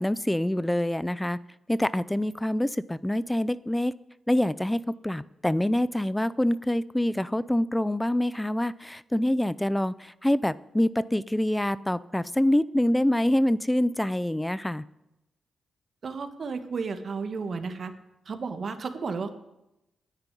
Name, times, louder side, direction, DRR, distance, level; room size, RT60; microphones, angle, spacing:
voice 1, 0.0-1.4 1.7-3.9 4.3-14.8, left 1 dB, 10° left, 17 dB, 0.5 m, -26 dB
voice 2, 16.0-17.9 18.2-19.3, right 4 dB, 60° right, 8 dB, 1.5 m, -33 dB
10.0 x 9.6 x 9.8 m, 0.93 s
cardioid pair, 65°, 0 cm